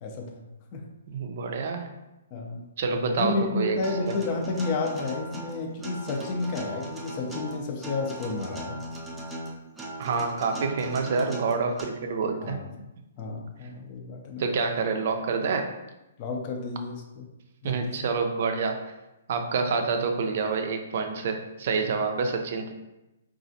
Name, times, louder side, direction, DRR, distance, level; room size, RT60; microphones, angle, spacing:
voice 1, 0.0-0.4 0.7-0.8 2.3-2.6 3.2-8.8 12.4-12.7 13.2-14.4 16.2-17.3 17.6-18.0, left 3 dB, 35° left, 2 dB, 0.5 m, -31 dB
voice 2, 1.1-1.9 2.8-3.8 10.0-12.6 14.4-15.7 17.6-18.9 19.3-22.7, right 4 dB, 55° right, 5 dB, 0.4 m, -27 dB
Acoustic guitar, 3.8-11.8, right 1 dB, 5° right, 0.6 m, -38 dB
4.0 x 2.4 x 2.6 m, 0.97 s
hypercardioid pair, 140°, 0 cm